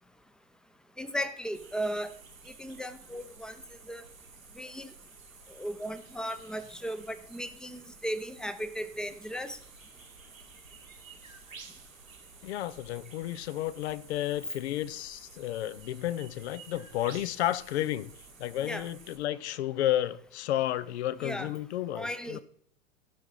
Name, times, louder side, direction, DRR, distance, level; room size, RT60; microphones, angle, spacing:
voice 1, 1.0-2.1 2.5-3.6 3.9-4.0 4.6-4.9 5.5-9.6 18.6-18.9 21.2-21.5 21.9-22.4, equal, ahead, 0.7 m, -36 dB
sound 1, 1.5-19.2, right 4 dB, 85° right, 2.0 m, -52 dB
voice 2, 12.4-18.1 18.4-22.4, left 13 dB, 55° left, 0.7 m, -32 dB
15.0 x 5.9 x 5.5 m
figure-of-eight pair, 95°, 39 cm